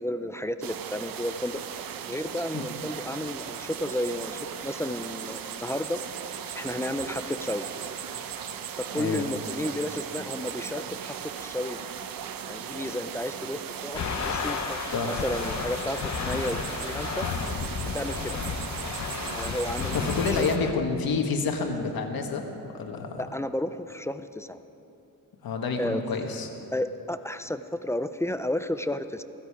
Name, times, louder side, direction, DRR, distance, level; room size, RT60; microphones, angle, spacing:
voice 1, 0.0-6.0 6.5-7.7 8.7-11.9 12.5-14.8 15.1-17.3 17.9-18.4 19.3-20.5 23.2-24.6 25.8-26.0 26.7-29.2, left 1 dB, 10° left, 10 dB, 0.4 m, -32 dB
sound 1, 0.6-20.6, right 8 dB, 70° right, 0.8 m, -37 dB
voice 2, 8.9-9.3 14.9-15.2 19.9-22.4 22.7-23.2 25.4-26.5, left 4 dB, 75° left, 3 dB, 1.7 m, -28 dB
sound 2, 13.9-20.7, left 6 dB, 50° left, 0.9 m, -32 dB
16.0 x 15.5 x 4.9 m, 2.8 s
wide cardioid pair, 135°, 36 cm